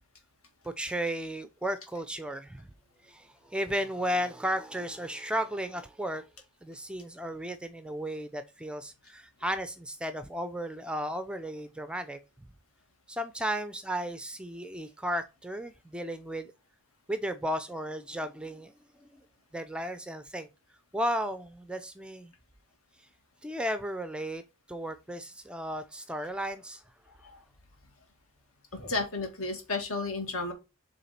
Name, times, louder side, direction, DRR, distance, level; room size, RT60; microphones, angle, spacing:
voice 1, 0.6-2.7 3.0-6.2 6.6-12.2 13.1-16.5 17.1-19.1 19.5-20.5 20.9-22.3 23.4-24.4 24.7-26.8, equal, 5° right, 0.4 m, -34 dB
voice 2, 28.7-30.5, left 3 dB, 65° left, 2.0 m, -32 dB
7.0 x 3.6 x 4.2 m
head